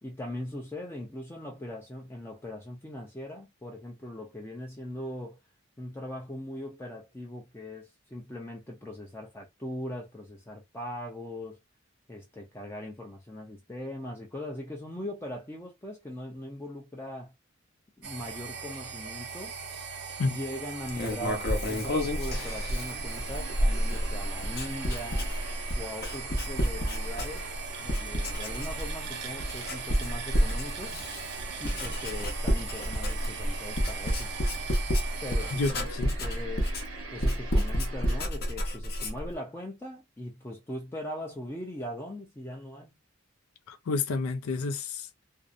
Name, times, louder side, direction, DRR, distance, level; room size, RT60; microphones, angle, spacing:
voice 1, 0.0-5.4 5.8-11.6 12.1-17.3 18.0-19.6 20.2-25.3 25.7-27.5 27.8-31.0 31.6-34.3 35.2-35.9 36.2-36.7 37.1-42.9, left 1 dB, 10° left, 0.4 m, -40 dB
sound 1, 18.0-35.7, right 6 dB, 55° right, 0.6 m, -40 dB
Writing, 20.9-27.6 27.9-29.1 29.4-39.3, equal, 50° left, 0.7 m, -30 dB
sound 2, 22.3-38.3, right 3 dB, 85° right, 0.9 m, -45 dB
voice 2, 35.6-36.1 37.5-37.6 43.7-45.2, left 3 dB, 90° left, 0.4 m, -30 dB
2.6 x 2.0 x 2.4 m
head